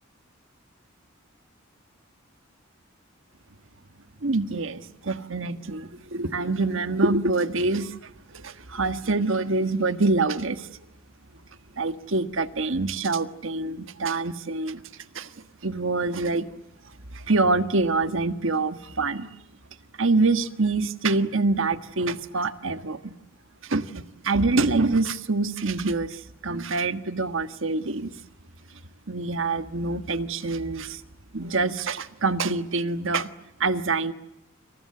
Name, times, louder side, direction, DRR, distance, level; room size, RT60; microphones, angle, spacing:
voice 1, 4.2-10.7 11.8-14.8 15.1-15.3 15.6-16.5 17.1-19.3 20.0-23.1 23.6-28.1 29.1-31.0 31.3-33.3 33.6-34.1, right 3 dB, 70° right, 10 dB, 1.5 m, -25 dB
30.0 x 27.5 x 6.8 m, 0.86 s
head